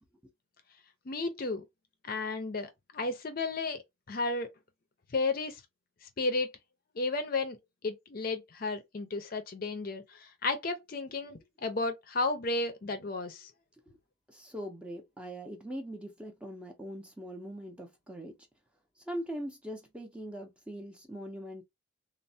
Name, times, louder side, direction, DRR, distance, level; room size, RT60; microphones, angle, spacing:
voice 1, 1.1-1.6 2.0-3.8 4.1-4.5 5.1-5.6 6.2-6.5 6.9-7.6 7.8-13.5, left 3 dB, 45° left, 0.5 m, -33 dB
voice 2, 14.3-18.3 19.1-21.6, equal, 5° right, 0.5 m, -41 dB
3.1 x 2.0 x 2.6 m
head